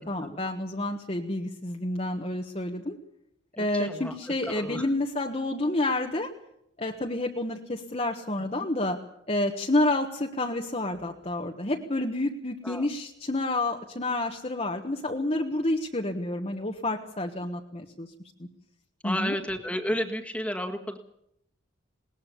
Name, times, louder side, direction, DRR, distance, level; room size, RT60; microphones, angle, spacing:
voice 1, 0.0-3.0 3.6-6.3 6.8-9.0 9.3-18.1 19.0-19.3, left 2 dB, 30° left, 1 dB, 1.4 m, -29 dB
voice 2, 3.6-4.1 4.4-4.8 12.6-12.8 19.0-21.0, equal, 5° left, 4 dB, 1.8 m, -31 dB
20.5 x 19.5 x 7.1 m, 0.76 s
head